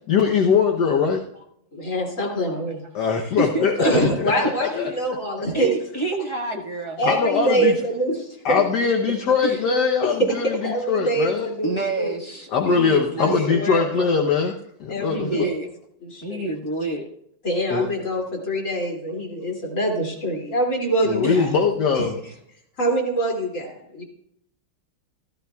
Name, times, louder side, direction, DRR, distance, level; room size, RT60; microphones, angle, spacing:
voice 1, 0.1-1.2 2.9-4.0 4.4-4.9 7.0-7.7 8.4-11.5 12.5-14.5 14.8-15.5 17.7-17.9 21.1-22.2, left 5 dB, 60° left, 2 dB, 1.3 m, -21 dB
voice 2, 1.7-2.8 3.2-3.3 3.8-5.7 7.0-8.6 10.0-12.2 13.2-14.2 14.9-15.5 16.0-16.5 17.4-21.5 21.9-22.0 22.8-24.0, right 1 dB, 35° left, -1 dB, 3.0 m, -25 dB
voice 3, 5.5-7.0 7.5-7.7 9.4-9.6 11.6-13.5 15.1-15.7 16.2-17.1 21.2-21.5, right 3 dB, 20° left, 0 dB, 0.9 m, -28 dB
14.5 x 14.5 x 2.3 m, 0.73 s
omnidirectional pair, 2.3 m